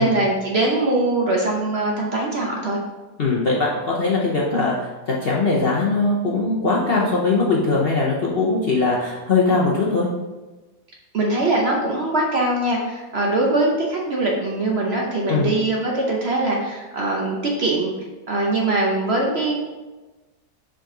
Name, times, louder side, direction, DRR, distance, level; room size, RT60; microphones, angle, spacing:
voice 1, 0.0-2.8 11.1-17.9 18.3-19.6, right 2 dB, 50° right, -1 dB, 0.9 m, -22 dB
voice 2, 3.2-10.1 15.3-15.5, left 3 dB, 50° left, -3 dB, 0.8 m, -21 dB
5.1 x 5.1 x 3.8 m, 1.2 s
omnidirectional pair, 1.7 m